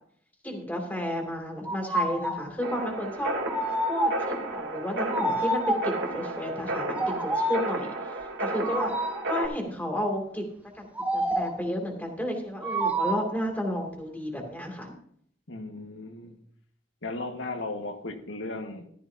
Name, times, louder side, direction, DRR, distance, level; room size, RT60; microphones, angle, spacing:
voice 1, 0.4-3.3 3.9-8.9 9.3-10.5 10.7-10.9 11.1-14.9, equal, 10° left, 1 dB, 2.7 m, -32 dB
sound 1, 1.7-2.5 3.5-4.4 5.1-6.0 6.9-7.8 8.6-9.3 11.0-11.7 12.6-13.4, right 1 dB, 10° right, 0.8 m, -28 dB
sound 2, 2.6-9.5, right 2 dB, 85° right, 3.1 m, -33 dB
voice 2, 15.5-16.4 17.0-18.9, left 2 dB, 80° left, 4 dB, 1.7 m, -36 dB
15.0 x 12.5 x 2.8 m, 0.65 s
head